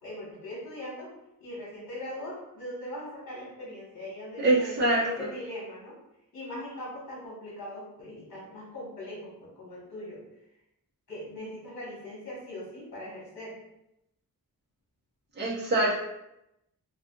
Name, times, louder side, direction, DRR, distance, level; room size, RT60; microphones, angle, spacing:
voice 1, 0.0-1.1 1.4-6.0 6.3-10.2 11.1-13.6, left 1 dB, 60° left, -8 dB, 1.3 m, -40 dB
voice 2, 4.4-5.0 15.4-16.0, right 2 dB, 30° right, -7 dB, 0.9 m, -24 dB
2.5 x 2.4 x 3.7 m, 0.86 s
wide cardioid pair, 140°, 36 cm